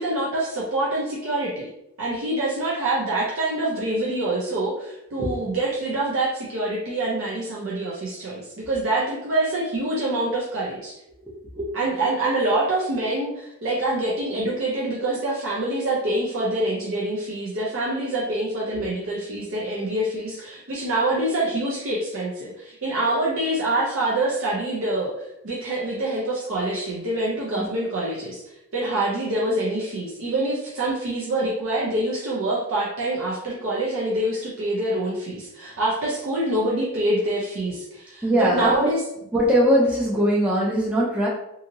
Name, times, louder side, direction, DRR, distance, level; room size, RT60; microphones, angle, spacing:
voice 1, 0.0-1.7 2.0-11.0 11.7-25.1 25.4-28.4 28.7-39.0, right 1 dB, 65° right, -5 dB, 0.6 m, -25 dB
voice 2, 38.2-38.9 39.3-41.3, equal, 5° right, -6 dB, 0.5 m, -21 dB
2.8 x 2.6 x 2.6 m, 0.84 s
head